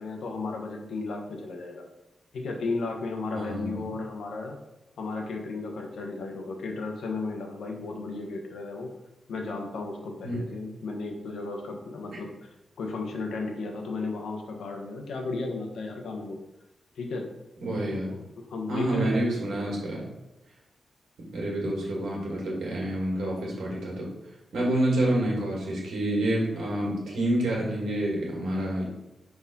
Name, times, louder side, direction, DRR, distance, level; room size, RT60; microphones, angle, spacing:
voice 1, 0.0-1.9 2.3-4.6 5.0-8.9 9.3-12.3 12.8-16.4 17.0-17.3 17.8-19.7, left 3 dB, 85° left, 2 dB, 1.2 m, -34 dB
voice 2, 3.3-3.9 10.2-10.4 17.6-18.1 18.7-20.1 21.3-24.1 24.5-28.9, right 1 dB, 85° right, -3 dB, 2.2 m, -28 dB
4.9 x 4.0 x 5.4 m, 1.0 s
cardioid pair, 90°, 0 cm